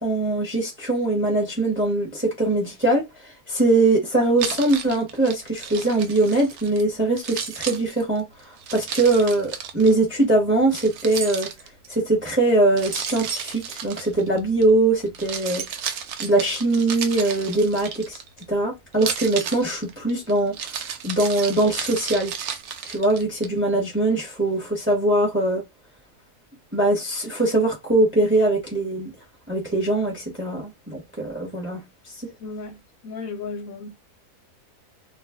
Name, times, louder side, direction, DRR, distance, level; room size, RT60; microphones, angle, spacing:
voice 1, 0.0-3.1 3.5-8.2 8.7-11.5 11.9-15.6 16.2-18.2 18.5-20.6 21.0-22.3 22.9-25.6 26.7-29.1 29.5-31.8 32.1-32.2, right 2 dB, 10° right, 0.7 m, -22 dB
Keys jangling, 4.4-6.8 7.2-9.9 10.7-11.9 12.8-14.6 15.1-18.4 18.9-23.5, right 7 dB, 70° right, 1.1 m, -33 dB
voice 2, 32.4-32.8 33.0-33.9, left 4 dB, 70° left, 0.9 m, -34 dB
2.4 x 2.4 x 3.4 m
omnidirectional pair, 1.7 m